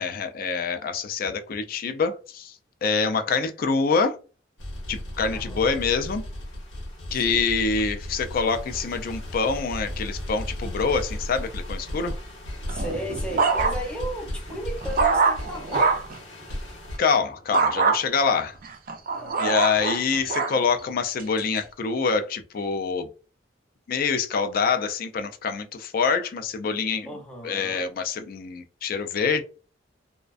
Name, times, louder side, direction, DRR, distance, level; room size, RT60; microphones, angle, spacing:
voice 1, 0.0-2.5 2.8-4.2 4.9-6.2 7.1-12.1 17.0-18.5 19.4-23.1 23.9-27.1 27.4-29.4, left 5 dB, 50° left, 0.3 m, -25 dB
sound 1, 4.6-17.0, left 1 dB, 90° left, 0.9 m, -35 dB
voice 2, 5.3-5.8 7.1-7.5 12.7-16.0 19.1-19.6 27.1-27.9, equal, 5° left, 0.6 m, -35 dB
sound 2, 12.7-14.0 14.5-16.2 17.5-18.0 18.6-20.6 21.2-21.6, right 4 dB, 45° right, 0.4 m, -24 dB
2.4 x 2.1 x 2.3 m
head